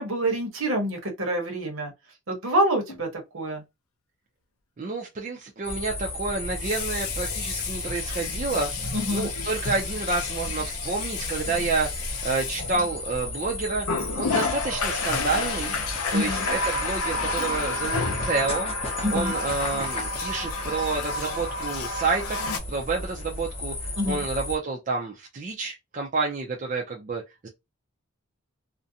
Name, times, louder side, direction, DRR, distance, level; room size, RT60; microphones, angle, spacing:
voice 1, 0.0-1.9 2.3-3.1 3.3-3.6 8.9-9.3 16.1-16.4 19.0-19.3 24.0-24.2, right 1 dB, 70° right, 0.9 m, -26 dB
Water tap faucet, 2.9-3.0 6.4-13.3 13.8-22.6, left 3 dB, 85° left, 0.5 m, -31 dB
voice 2, 4.8-8.7 9.1-11.9 12.2-13.9 14.2-15.7 16.1-18.7 19.1-22.4 22.7-23.7 24.1-27.5, right 3 dB, 35° right, 0.4 m, -29 dB
sound 1, 5.6-24.6, left 2 dB, 25° left, 0.6 m, -34 dB
2.5 x 2.1 x 2.7 m
head